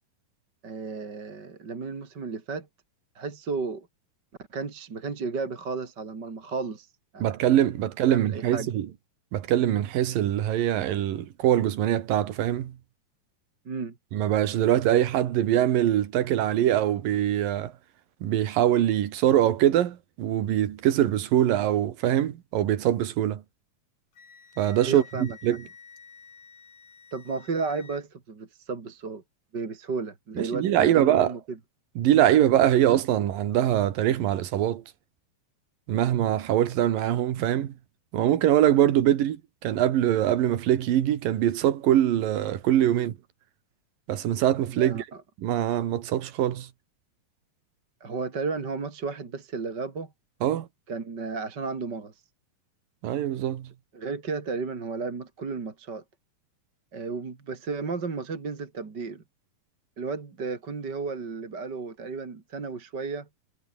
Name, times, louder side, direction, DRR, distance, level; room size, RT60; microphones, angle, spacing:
voice 1, 0.6-2.7 3.1-3.9 4.5-6.9 7.1-7.3 8.1-8.7 13.6-14.0 24.9-25.4 27.1-29.2 29.5-31.6 44.7-45.2 48.0-50.1 50.9-52.1 53.9-56.0 56.9-59.2 60.0-63.3, right 4 dB, 30° right, 2.9 m, -33 dB
voice 2, 7.2-8.9 9.3-12.8 14.1-17.7 18.2-23.4 24.6-25.6 30.4-31.3 32.0-34.8 35.9-37.7 38.1-43.2 44.1-45.0 45.4-46.7 50.4-50.7 53.0-53.7, right 11 dB, 75° right, 3.4 m, -23 dB
Wind instrument woodwind instrument, 24.1-28.0, left 5 dB, 55° left, 5.6 m, -51 dB
omnidirectional pair, 4.0 m